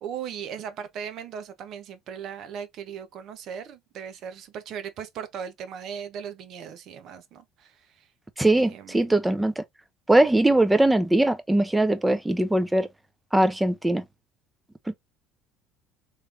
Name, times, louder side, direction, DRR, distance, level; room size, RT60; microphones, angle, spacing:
voice 1, 0.0-8.1 8.4-9.1, right 8 dB, 55° right, 0.9 m, -38 dB
voice 2, 8.4-9.6 10.1-12.9 13.3-14.0 14.9-15.0, right 1 dB, 10° right, 0.8 m, -21 dB
3.3 x 3.2 x 2.7 m
hypercardioid pair, 65°, 0 cm